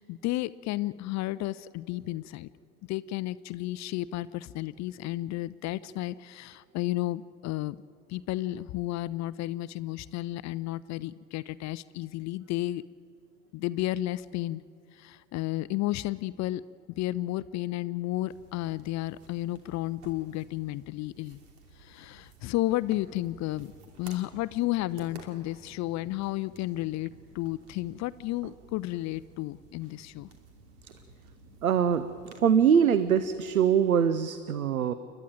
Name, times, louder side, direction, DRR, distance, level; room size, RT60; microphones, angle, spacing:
voice 1, 0.0-2.5 2.9-7.8 8.1-12.8 13.5-14.6 14.9-16.6 17.0-21.4 21.7-23.7 24.0-30.3, left 16 dB, 45° left, 17 dB, 0.5 m, -32 dB
sound 1, 18.3-34.1, right 3 dB, 65° right, 2.8 m, -54 dB
voice 2, 31.6-34.9, right 8 dB, 85° right, 14 dB, 0.6 m, -23 dB
29.0 x 12.0 x 9.2 m, 2.5 s
figure-of-eight pair, 60°, 41 cm